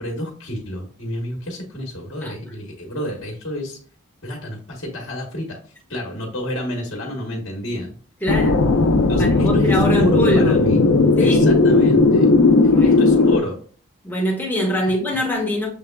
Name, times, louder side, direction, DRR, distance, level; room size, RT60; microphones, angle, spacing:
voice 1, 0.0-3.8 4.2-5.6 5.9-8.0 9.1-9.7 10.0-10.8 11.2-12.3 12.8-13.6, left 1 dB, 55° left, 1.0 m, -29 dB
voice 2, 8.2-8.7 9.2-10.7 11.2-11.6 12.7-13.4 14.0-15.7, equal, 10° left, 1.0 m, -23 dB
sound 1, 8.3-13.4, left 3 dB, 75° left, 0.5 m, -15 dB
6.5 x 3.4 x 2.2 m
head